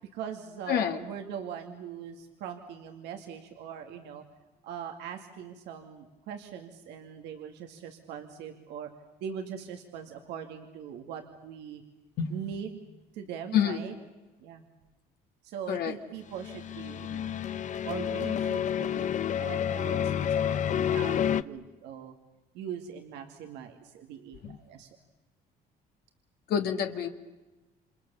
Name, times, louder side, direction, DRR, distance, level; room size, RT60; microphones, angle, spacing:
voice 1, 0.1-4.2 4.6-8.9 9.2-11.8 12.3-12.9 13.1-13.9 14.4-14.6 15.4-17.3 17.8-22.1 22.5-24.9, right 8 dB, 90° right, 4 dB, 2.2 m, -41 dB
sound 1, 16.3-21.4, left 9 dB, 45° left, 0.8 m, -29 dB
voice 2, 26.5-27.1, left 8 dB, 70° left, 5 dB, 1.8 m, -27 dB
28.5 x 27.0 x 6.9 m, 1.1 s
cardioid pair, 110°, 17 cm